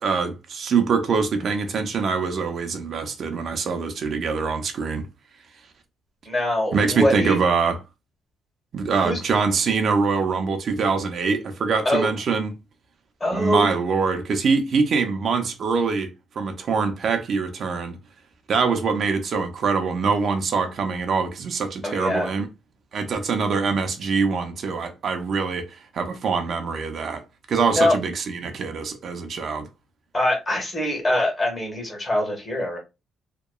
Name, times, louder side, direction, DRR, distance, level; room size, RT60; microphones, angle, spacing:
voice 1, 0.0-5.1 6.7-7.8 8.7-12.5 13.3-18.0 18.5-22.5 22.9-27.2 27.5-29.7, right 5 dB, 55° right, 0.5 m, -24 dB
voice 2, 6.3-7.4 8.9-9.2 11.8-12.1 13.2-13.7 21.8-22.3 27.7-28.0 30.1-32.8, left 1 dB, 30° left, 1.3 m, -23 dB
2.8 x 2.2 x 2.3 m
cardioid pair, 90°, 0 cm